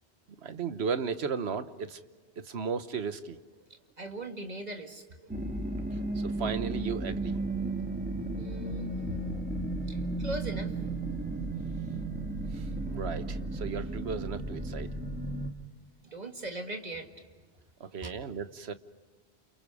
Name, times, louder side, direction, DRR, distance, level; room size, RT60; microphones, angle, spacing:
voice 1, 0.4-2.0 2.4-3.4 6.2-7.4 9.1-9.2 12.5-14.9 17.8-18.7, right 6 dB, 80° right, 11 dB, 1.3 m, -35 dB
voice 2, 4.0-5.0 8.4-8.9 9.1-9.3 9.9-10.7 16.1-17.1 18.0-18.1, right 2 dB, 40° right, 4 dB, 2.2 m, -39 dB
sound 1, 5.3-15.5, right 2 dB, 10° right, 2.0 m, -34 dB
29.5 x 28.5 x 4.9 m, 1.4 s
omnidirectional pair, 1.1 m